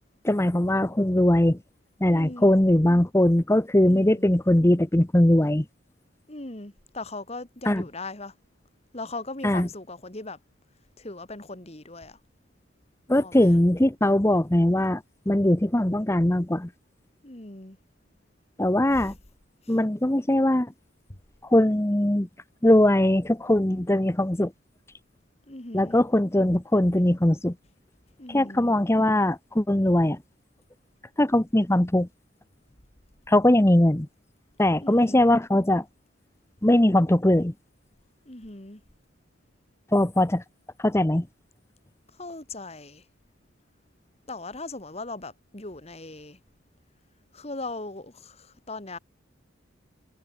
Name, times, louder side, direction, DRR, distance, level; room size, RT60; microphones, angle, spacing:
voice 1, 0.2-1.6 2.0-5.7 7.7-7.8 9.4-9.7 13.1-16.7 18.6-19.1 19.7-20.7 21.5-22.3 22.6-24.5 25.7-27.5 28.3-30.2 31.2-32.1 33.3-34.1 34.6-35.8 36.6-37.5 39.9-40.4 40.8-41.3, left 1 dB, 15° left, 0.8 m, -21 dB
voice 2, 2.1-2.5 3.8-4.4 6.3-8.3 8.9-10.4 11.0-12.2 13.1-13.5 17.2-17.8 18.9-19.1 19.6-19.7 25.5-25.9 28.2-28.7 34.8-35.2 38.3-38.8 42.2-43.0 44.3-46.4 47.3-49.0, left 2 dB, 30° left, 2.0 m, -39 dB
head